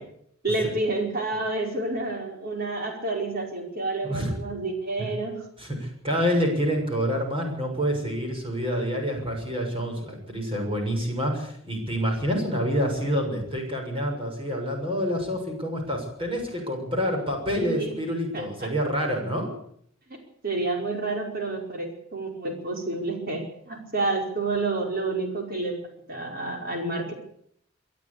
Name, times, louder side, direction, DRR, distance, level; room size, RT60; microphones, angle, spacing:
voice 1, 0.4-5.4 17.5-17.9 18.3-18.7 20.4-27.1, right 2 dB, 45° right, 2 dB, 5.1 m, -29 dB
voice 2, 5.6-19.5, equal, 25° right, 2 dB, 6.8 m, -27 dB
23.5 x 13.0 x 8.6 m, 0.68 s
head